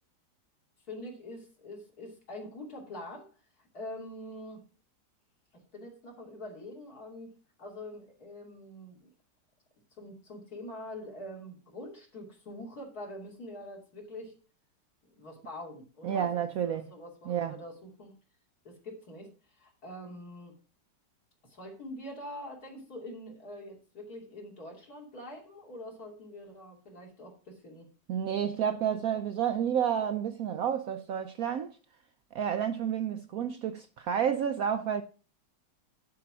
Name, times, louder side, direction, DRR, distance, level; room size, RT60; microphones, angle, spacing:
voice 1, 0.9-3.3 3.6-4.6 5.5-7.3 7.6-9.1 10.0-14.3 15.0-16.3 16.6-18.1 18.6-20.6 21.4-27.9, left 1 dB, 55° left, 3.2 m, -44 dB
voice 2, 16.0-16.9 17.3-17.6 28.1-31.8 32.3-35.0, right 8 dB, 70° right, 0.9 m, -30 dB
11.0 x 4.8 x 6.1 m
omnidirectional pair, 2.0 m